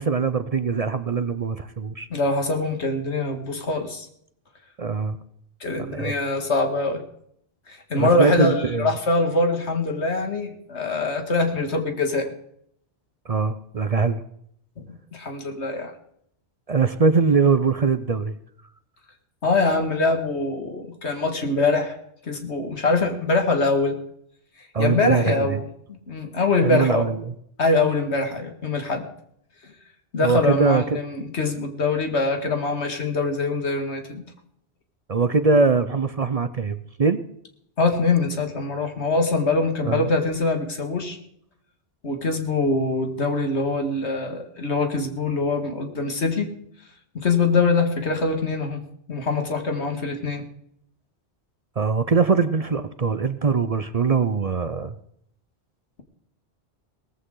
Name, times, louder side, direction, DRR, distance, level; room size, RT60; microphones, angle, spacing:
voice 1, 0.0-2.1 4.8-5.2 5.8-6.2 8.0-9.0 13.3-14.2 16.7-18.3 24.7-25.6 26.6-27.2 30.2-30.8 35.1-37.2 39.8-40.1 51.8-54.9, right 4 dB, 40° right, 12 dB, 0.6 m, -22 dB
voice 2, 2.1-4.1 5.6-7.0 7.7-12.3 14.8-14.9 15.1-15.9 19.4-22.0 22.3-24.0 24.8-27.0 27.6-29.0 30.1-34.2 37.8-41.2 42.0-46.5 47.1-48.8 49.1-50.4, left 3 dB, 80° left, 5 dB, 2.2 m, -23 dB
18.5 x 14.5 x 3.8 m, 0.70 s
omnidirectional pair, 1.1 m